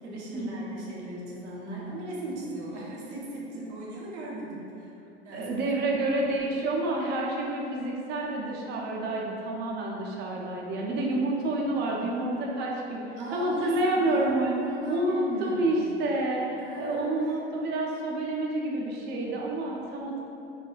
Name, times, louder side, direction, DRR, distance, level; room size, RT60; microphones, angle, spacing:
voice 1, 0.0-4.9 5.2-5.6 6.0-6.1 13.2-14.3 14.6-15.7 16.6-17.4, right 1 dB, 80° right, -4 dB, 0.7 m, -37 dB
voice 2, 5.3-14.6 14.9-20.2, right 1 dB, 30° right, -2 dB, 0.4 m, -29 dB
2.3 x 2.2 x 3.1 m, 2.8 s
hypercardioid pair, 75°, 35 cm